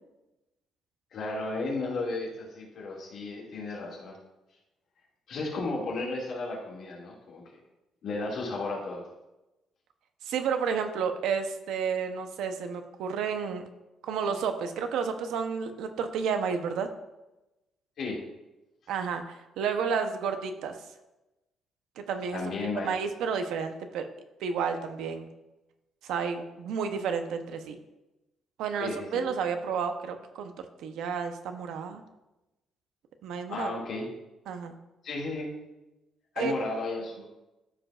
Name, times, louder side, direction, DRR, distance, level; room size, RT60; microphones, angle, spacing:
voice 1, 1.1-4.2 5.3-7.4 8.0-9.0 18.0-18.2 22.3-22.9 28.8-29.2 33.5-34.1 35.0-35.5 36.3-37.3, left 3 dB, 50° left, -3 dB, 2.2 m, -34 dB
voice 2, 10.2-13.7 14.0-16.9 18.9-20.8 22.0-22.4 22.8-24.1 24.4-25.3 26.0-27.8 28.6-32.0 33.2-33.8 34.5-34.8 36.4-36.7, right 6 dB, 85° right, 7 dB, 0.8 m, -31 dB
13.5 x 5.0 x 2.4 m, 0.99 s
cardioid pair, 180°, 0 cm